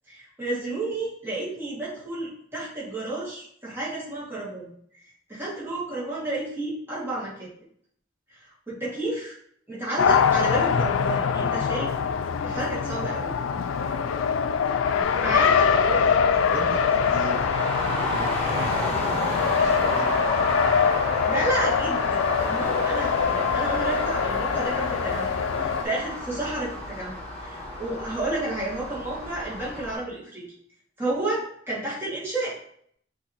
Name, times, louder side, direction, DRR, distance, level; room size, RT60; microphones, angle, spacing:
voice 1, 0.1-4.7 5.3-7.5 8.3-9.3 9.7-11.9 12.4-13.4 15.1-16.0 21.2-27.1 27.4-30.4 31.0-32.6, right 2 dB, 10° right, -8 dB, 1.8 m, -31 dB
Race car auto racing, 10.0-25.8, left 6 dB, 75° left, 0.3 m, -24 dB
Traffic noise roadway noise, 15.0-30.0, left 1 dB, 30° left, 1.2 m, -32 dB
voice 2, 15.0-17.4 18.0-18.6 19.3-20.2, right 2 dB, 80° right, -2 dB, 1.2 m, -37 dB
6.4 x 2.8 x 2.8 m, 0.64 s
head